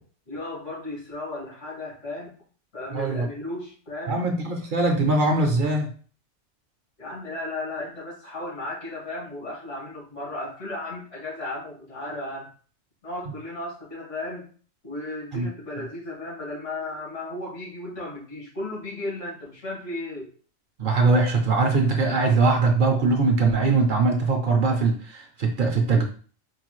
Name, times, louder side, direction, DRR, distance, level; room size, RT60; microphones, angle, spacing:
voice 1, 0.3-2.4 2.7-4.2 7.0-12.5 13.0-14.5 14.8-20.3, left 2 dB, 90° left, -6 dB, 2.3 m, -35 dB
voice 2, 2.9-3.3 4.1-5.9 15.3-15.5 20.8-26.1, right 3 dB, 55° right, 3 dB, 0.7 m, -21 dB
4.6 x 2.4 x 3.0 m, 0.42 s
omnidirectional pair, 1.2 m